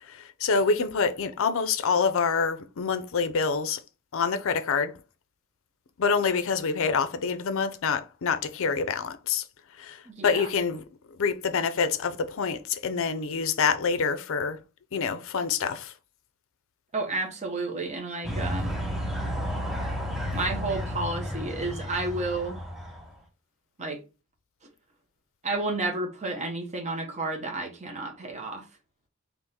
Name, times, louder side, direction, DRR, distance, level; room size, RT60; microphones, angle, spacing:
voice 1, 0.0-3.8 4.1-5.0 6.0-9.4 9.8-10.9 11.2-14.6 14.9-15.9, left 5 dB, 65° left, 0.5 m, -26 dB
voice 2, 10.0-10.5 16.9-18.8 20.3-22.6 23.8-24.0 25.4-28.6, right 2 dB, 30° right, 0.9 m, -31 dB
sound 1, 18.2-23.1, equal, ahead, 0.7 m, -32 dB
3.6 x 3.0 x 4.1 m
head